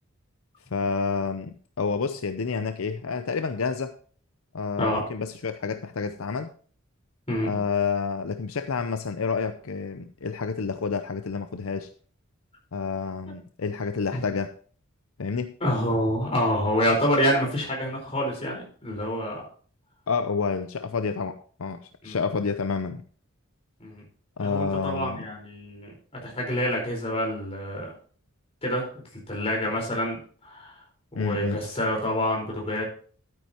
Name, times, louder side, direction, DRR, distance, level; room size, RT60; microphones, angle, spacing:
voice 1, 0.7-3.9 4.5-6.5 7.4-11.9 12.7-14.5 15.2-15.5 20.1-23.0 24.4-25.2 31.1-31.6, left 5 dB, 80° left, 8 dB, 0.6 m, -29 dB
voice 2, 15.6-19.4 22.0-22.2 23.8-24.0 24.4-27.9 28.6-30.8 31.1-32.8, equal, 30° left, -1 dB, 4.5 m, -27 dB
12.0 x 9.3 x 2.9 m, 0.44 s
head